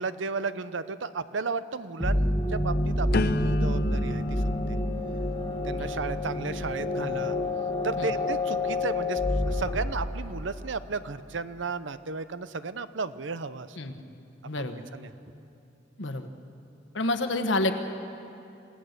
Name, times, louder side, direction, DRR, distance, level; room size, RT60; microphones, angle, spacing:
voice 1, 0.0-4.8 5.6-7.4 7.8-9.2 9.5-13.8 14.9-15.1, right 4 dB, 75° right, 13 dB, 0.7 m, -34 dB
sound 1, 2.0-10.6, left 1 dB, 20° left, 1.7 m, -28 dB
sound 2, 3.1-9.0 9.5-9.9, left 3 dB, 55° left, 0.5 m, -36 dB
voice 2, 13.8-14.1 14.4-14.8 16.0-16.3 16.9-17.7, left 2 dB, 75° left, 7 dB, 1.4 m, -29 dB
27.5 x 17.5 x 6.8 m, 2.7 s
head